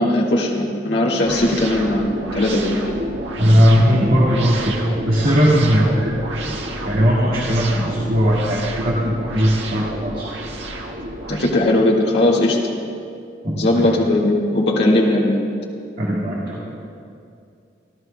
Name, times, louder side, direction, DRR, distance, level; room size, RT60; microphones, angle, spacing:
voice 1, 0.0-2.7 11.3-12.6 13.6-15.4, left 1 dB, 65° left, -3 dB, 1.8 m, -18 dB
sound 1, 1.2-11.5, right 1 dB, 85° right, 1.5 m, -29 dB
voice 2, 3.4-4.8 5.0-6.2 6.9-10.3 13.4-13.9 16.0-16.6, equal, 55° right, -5 dB, 1.8 m, -18 dB
28.5 x 12.5 x 2.2 m, 2.4 s
head